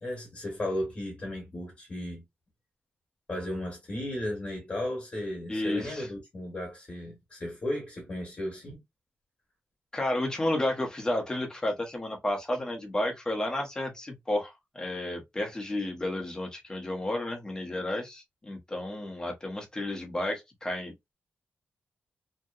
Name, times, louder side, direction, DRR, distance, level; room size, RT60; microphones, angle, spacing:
voice 1, 0.0-2.2 3.3-8.8, left 1 dB, 35° left, 1.1 m, -35 dB
voice 2, 5.5-6.1 9.9-21.1, left 1 dB, 15° left, 0.7 m, -32 dB
2.7 x 2.0 x 2.3 m
wide cardioid pair, 165°, 4 cm